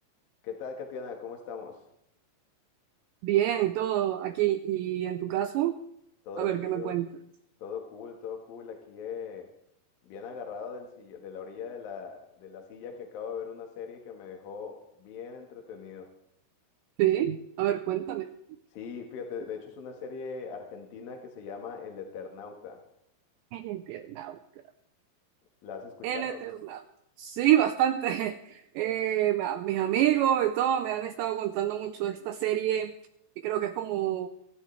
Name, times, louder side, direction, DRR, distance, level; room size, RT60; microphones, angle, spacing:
voice 1, 0.4-1.8 6.2-7.0 7.6-9.5 10.0-16.1 18.7-22.8 25.6-26.4, left 6 dB, 60° left, 2 dB, 2.6 m, -40 dB
voice 2, 3.2-5.8 6.4-7.1 17.0-18.3 23.5-24.4 26.0-26.8 27.2-32.9 33.4-34.3, right 12 dB, 85° right, 9 dB, 2.5 m, -27 dB
26.0 x 11.5 x 3.3 m, 0.76 s
omnidirectional pair, 5.7 m